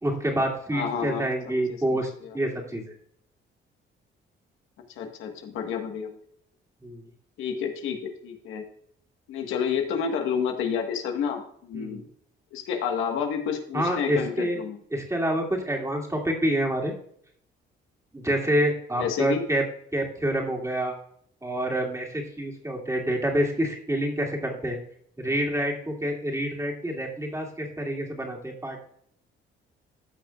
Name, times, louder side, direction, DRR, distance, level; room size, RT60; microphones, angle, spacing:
voice 1, 0.0-2.9 6.8-7.1 11.7-12.1 13.7-14.6 14.9-16.9 18.1-19.6 19.9-20.9 21.4-24.8 25.2-28.8, right 1 dB, 15° right, 0 dB, 2.5 m, -27 dB
voice 2, 0.7-1.6 2.2-2.3 5.0-6.1 7.4-8.6 9.3-12.0 12.5-14.8 19.0-19.4, left 7 dB, 90° left, 4 dB, 1.4 m, -29 dB
14.5 x 5.9 x 2.4 m, 0.65 s
cardioid pair, 90°, 20 cm